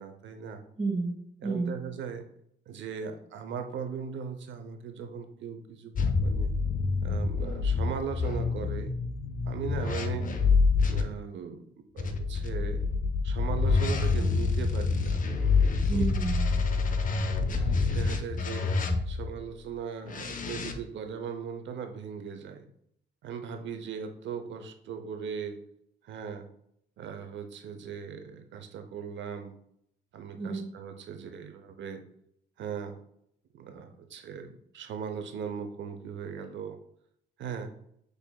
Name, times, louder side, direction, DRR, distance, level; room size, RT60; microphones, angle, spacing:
voice 1, 0.0-0.6 1.4-2.2 2.7-5.9 6.2-6.5 7.0-8.9 9.4-10.3 10.9-11.6 11.9-12.8 13.2-15.2 15.9-16.1 17.6-18.7 19.1-22.7 23.2-25.6 26.0-26.5 27.0-29.5 30.1-32.0 32.6-32.9 33.5-36.8 37.4-37.7, right 6 dB, 70° right, 6 dB, 0.7 m, -38 dB
voice 2, 0.8-1.8 15.9-16.5 30.4-30.7, right 3 dB, 30° right, -8 dB, 1.7 m, -31 dB
sound 1, 5.9-11.0 12.0-19.3 20.1-20.7, left 4 dB, 40° left, 0.6 m, -27 dB
6.4 x 3.4 x 2.2 m, 0.72 s
cardioid pair, 90°, 20 cm